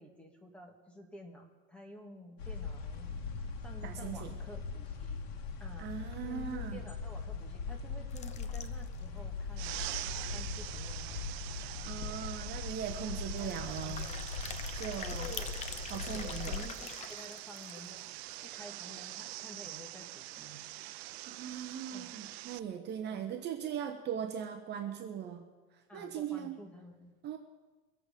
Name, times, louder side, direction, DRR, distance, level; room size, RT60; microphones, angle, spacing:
voice 1, 0.0-3.2 3.6-5.2 5.6-5.9 6.2-9.8 10.3-12.3 13.4-14.3 15.1-18.1 18.4-20.7 21.9-22.2 23.0-23.3 25.9-27.2, left 1 dB, 5° left, 1 dB, 1.9 m, -51 dB
sound 1, 2.4-16.6, left 4 dB, 85° left, 2.0 m, -40 dB
voice 2, 3.8-4.3 5.8-6.8 11.5-14.1 14.7-15.3 15.9-16.6 20.9-25.4 25.7-26.6 27.2-27.4, right 9 dB, 35° right, 5 dB, 1.0 m, -40 dB
sound 2, 8.1-9.0 9.5-9.6 9.8-9.9 10.3-10.4 11.7-11.8 12.0-12.3 13.3-18.0, left 7 dB, 20° left, 0.7 m, -46 dB
sound 3, 9.6-22.6, right 17 dB, 85° right, 0.6 m, -44 dB
23.0 x 8.1 x 5.2 m, 1.3 s
supercardioid pair, 150°, 30 cm